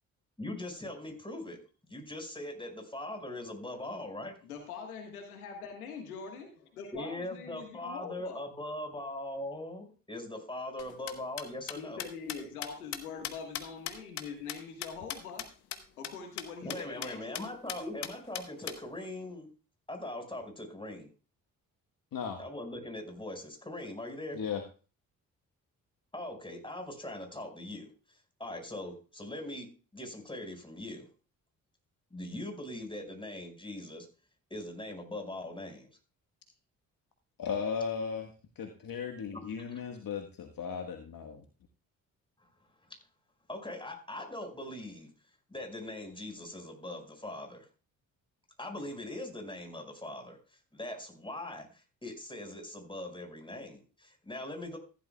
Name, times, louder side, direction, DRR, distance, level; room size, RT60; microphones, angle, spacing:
voice 1, 0.4-1.6 1.8-4.4 6.9-12.0 16.6-19.5 19.9-21.1 22.4-24.4 26.1-27.9 28.4-29.7 29.9-31.1 32.1-34.1 34.5-35.9 39.3-39.4 42.4-42.5 43.5-45.1 45.5-47.7 48.6-50.4 50.7-54.8, left 1 dB, 10° left, 3 dB, 5.3 m, -41 dB
voice 2, 4.4-8.5 11.7-17.5, left 5 dB, 90° left, 4 dB, 1.6 m, -43 dB
sound 1, 10.8-15.5 15.7-15.8 16.0-16.1 16.4-16.5 16.7-17.1 17.3-17.4 17.7-18.8, left 12 dB, 65° left, 1.3 m, -38 dB
voice 3, 37.4-41.4, left 6 dB, 50° left, 4 dB, 1.5 m, -36 dB
15.0 x 11.5 x 2.3 m, 0.35 s
hypercardioid pair, 45°, 43 cm